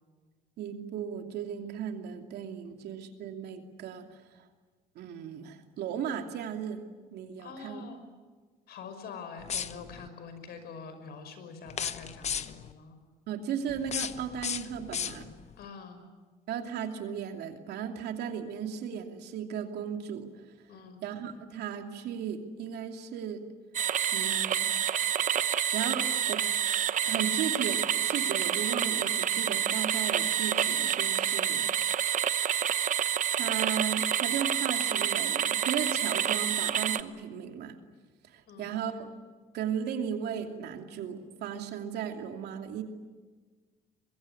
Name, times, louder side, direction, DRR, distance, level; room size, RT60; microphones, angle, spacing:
voice 1, 0.6-4.1 4.9-6.8 7.1-7.8 13.3-15.3 16.5-20.3 21.0-23.4 24.1-24.7 25.7-26.4 27.1-31.7 32.7-32.8 33.3-37.8 38.3-39.1 39.5-42.8, right 8 dB, 75° right, 5 dB, 2.8 m, -36 dB
voice 2, 7.4-8.0 8.7-13.0 15.6-16.0 20.7-21.1 38.5-38.7, left 5 dB, 70° left, 9 dB, 5.6 m, -45 dB
sound 1, 9.4-10.1 11.7-12.7 13.7-15.5, left 8 dB, 40° left, 1.0 m, -36 dB
sound 2, 23.7-37.0, right 9 dB, 50° right, 1.0 m, -28 dB
24.0 x 22.5 x 9.9 m, 1.4 s
cardioid pair, 110°, 17 cm